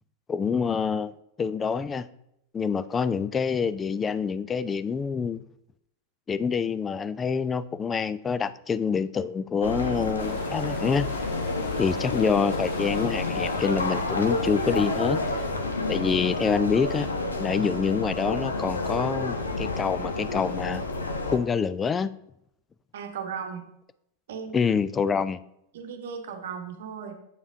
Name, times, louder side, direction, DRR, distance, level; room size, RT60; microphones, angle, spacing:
voice 1, 0.3-2.1 2.5-5.4 6.3-11.1 11.8-15.2 15.9-17.1 17.4-20.8 21.3-22.1 24.5-25.4, left 6 dB, 20° left, 15 dB, 0.3 m, -26 dB
sound 1, 9.6-21.4, left 2 dB, 75° left, 1.0 m, -29 dB
sound 2, 10.2-15.2, left 4 dB, 45° left, 1.4 m, -43 dB
voice 2, 22.9-23.7 24.3-24.7 25.7-27.1, right 6 dB, 60° right, 6 dB, 1.0 m, -36 dB
8.2 x 7.0 x 2.6 m, 0.79 s
figure-of-eight pair, 90°, 0 cm